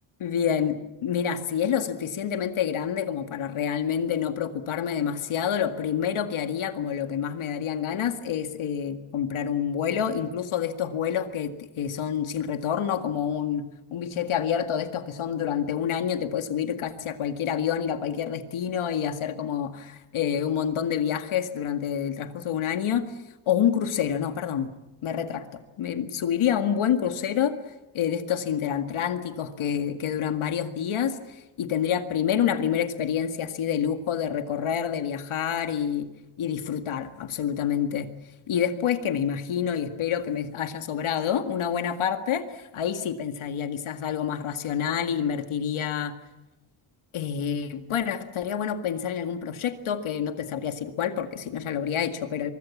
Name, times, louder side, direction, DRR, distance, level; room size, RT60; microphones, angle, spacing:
voice 1, 0.2-13.7 13.9-23.1 23.5-24.7 25.0-27.6 27.9-36.1 36.4-38.1 38.5-46.1 47.1-52.5, left 8 dB, 75° left, 7 dB, 2.1 m, -28 dB
23.5 x 23.5 x 7.3 m, 1.0 s
wide cardioid pair, 160°, 49 cm